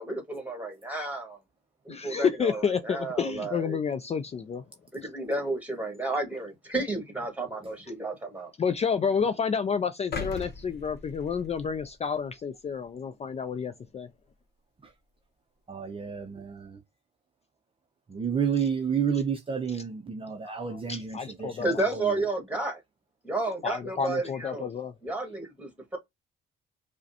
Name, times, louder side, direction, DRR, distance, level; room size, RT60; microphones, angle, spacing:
voice 1, 0.0-1.4 1.9-3.8 4.9-8.5 21.6-22.8 23.2-24.7 25.0-26.0, right 2 dB, 5° right, 1.6 m, -32 dB
voice 2, 1.9-4.6 8.6-14.1 18.6-18.7 19.7-19.8 20.4-21.8 23.6-24.9, left 6 dB, 35° left, 0.4 m, -30 dB
sound 1, 10.1-12.3 12.8-12.9, left 5 dB, 55° left, 0.9 m, -39 dB
voice 3, 15.7-16.8 18.1-21.6 21.9-22.2, right 7 dB, 25° right, 0.6 m, -30 dB
4.9 x 2.1 x 2.7 m
cardioid pair, 90°, 20 cm